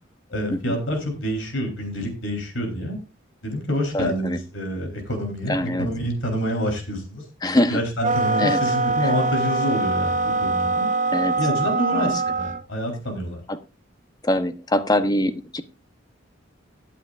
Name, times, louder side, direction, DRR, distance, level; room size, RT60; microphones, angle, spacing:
voice 1, 0.3-3.0 3.4-7.3 7.7-10.9 11.4-13.4, equal, 85° left, 3 dB, 3.6 m, -27 dB
voice 2, 3.9-4.4 5.5-5.9 7.4-7.8 8.4-8.6 9.0-9.1 11.1-11.4 11.9-12.1 13.5-13.6 14.2-15.6, left 1 dB, 20° left, 10 dB, 0.8 m, -23 dB
sound 1, 8.0-12.6, right 3 dB, 40° right, 0.7 m, -23 dB
17.5 x 8.4 x 2.5 m, 0.30 s
head